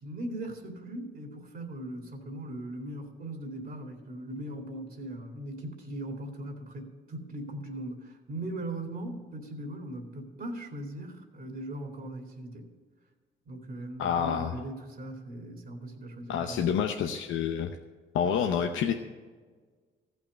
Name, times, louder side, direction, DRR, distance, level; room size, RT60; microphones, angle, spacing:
voice 1, 0.0-12.7 13.5-16.8, right 1 dB, 50° right, 2 dB, 2.4 m, -39 dB
voice 2, 14.0-14.5 16.3-17.7 18.1-18.9, left 8 dB, 80° left, 5 dB, 0.8 m, -28 dB
14.5 x 5.9 x 9.7 m, 1.5 s
cardioid pair, 90°, 20 cm